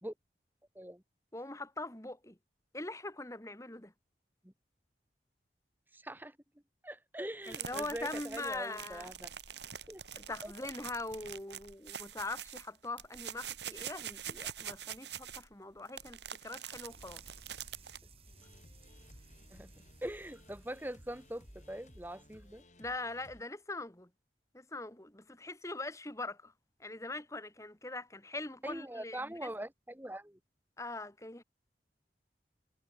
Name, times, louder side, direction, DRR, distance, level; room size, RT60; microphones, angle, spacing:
voice 1, 1.3-2.4 2.7-3.9 7.5-9.1 10.1-16.2 16.4-17.2 22.8-24.1 24.5-26.5 26.8-29.5 30.8-31.4, left 2 dB, 15° left, 1.9 m, -42 dB
voice 2, 5.9-6.3 6.8-9.3 9.9-10.0 10.4-10.5 19.5-19.7 20.0-22.6 28.6-30.4, right 1 dB, 10° right, 1.6 m, -42 dB
sound 1, 7.4-18.0, right 9 dB, 80° right, 7.7 m, -45 dB
sound 2, 16.9-22.6, right 2 dB, 35° right, 8.0 m, -59 dB
sound 3, 18.3-23.4, left 1 dB, 40° left, 7.0 m, -59 dB
head